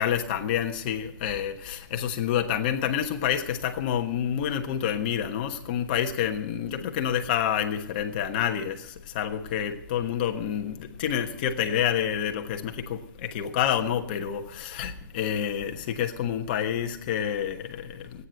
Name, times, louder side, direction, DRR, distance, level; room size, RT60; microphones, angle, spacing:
voice 1, 0.0-8.8 9.1-18.2, left 9 dB, 25° left, 5 dB, 1.2 m, -28 dB
15.5 x 9.5 x 8.9 m, 0.77 s
hypercardioid pair, 165°, 11 cm